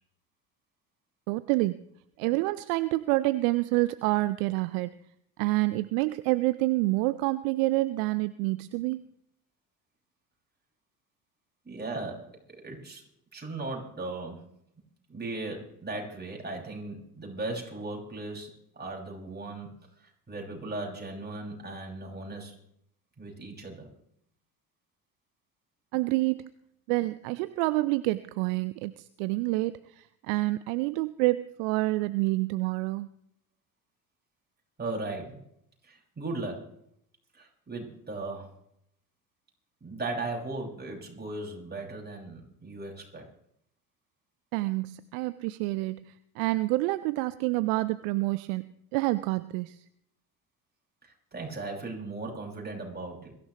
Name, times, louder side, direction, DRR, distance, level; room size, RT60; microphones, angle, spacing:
voice 1, 1.3-1.8 2.2-4.9 5.4-9.0 25.9-26.5 26.9-33.1 44.5-49.8, right 20 dB, 60° right, 16 dB, 0.7 m, -28 dB
voice 2, 11.6-13.0 13.3-14.4 15.1-19.7 20.0-22.5 23.2-23.9 34.8-35.4 35.8-36.8 37.3-38.5 39.8-43.3 51.0-53.4, right 2 dB, 20° right, -1 dB, 5.8 m, -37 dB
23.0 x 14.5 x 3.1 m, 0.72 s
figure-of-eight pair, 60°, 45 cm